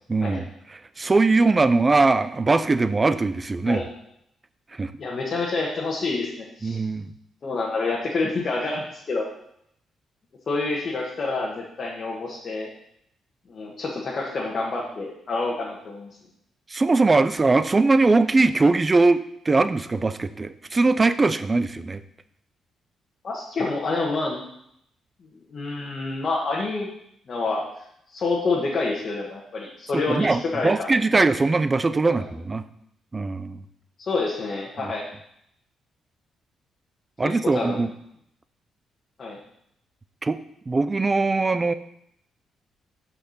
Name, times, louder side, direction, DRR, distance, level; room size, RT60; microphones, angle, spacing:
voice 1, 0.1-0.5 1.0-3.8 4.8-4.9 6.6-7.1 16.7-22.0 29.9-32.7 33.1-33.6 34.8-34.9 37.2-37.9 40.2-40.4 40.7-41.7, right 3 dB, 20° right, 13 dB, 0.4 m, -21 dB
voice 2, 5.0-6.8 7.4-9.3 10.5-12.7 13.5-16.2 23.2-24.4 25.5-26.9 27.3-27.7 28.1-30.9 32.1-32.3 34.0-35.0 37.2-37.8 39.2-39.4, left 3 dB, 35° left, -3 dB, 1.3 m, -28 dB
6.5 x 5.8 x 7.1 m, 0.74 s
cardioid pair, 165°, 0 cm